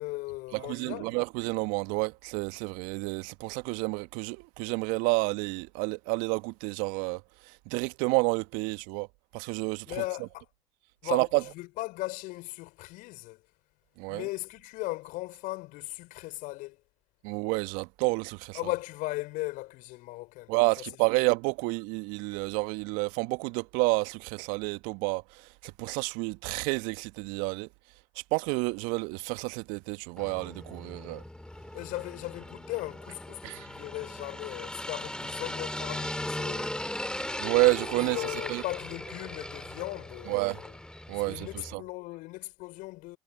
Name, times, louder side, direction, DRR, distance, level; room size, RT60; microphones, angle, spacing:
voice 1, 0.0-1.1 9.9-10.5 11.0-13.4 14.1-16.8 18.5-20.5 31.7-36.8 38.0-40.8 41.1-43.2, left 20 dB, 60° left, 5.8 m, -37 dB
voice 2, 0.5-7.2 7.4-9.1 9.3-9.9 11.1-11.4 14.0-14.2 17.2-18.6 20.5-27.7 28.3-31.2 33.4-33.7 37.4-38.6 40.3-40.6 41.1-41.8, right 28 dB, 65° right, 1.6 m, -29 dB
sound 1, 30.2-41.7, left 1 dB, 5° left, 3.1 m, -38 dB
figure-of-eight pair, 55°, 15 cm